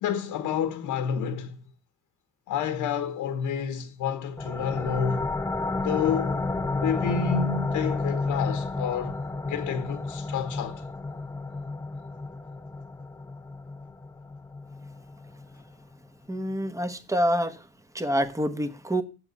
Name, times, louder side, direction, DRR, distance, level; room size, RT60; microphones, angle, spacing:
voice 1, 0.0-1.6 2.5-5.3 5.7-6.4 6.7-9.2 9.4-10.8, left 7 dB, 90° left, 1.1 m, -29 dB
sound 1, 4.4-15.7, left 3 dB, 10° left, 0.7 m, -31 dB
voice 2, 16.3-17.7 17.9-19.0, equal, 10° right, 1.2 m, -27 dB
7.5 x 7.0 x 8.1 m
cardioid pair, 90°, 30 cm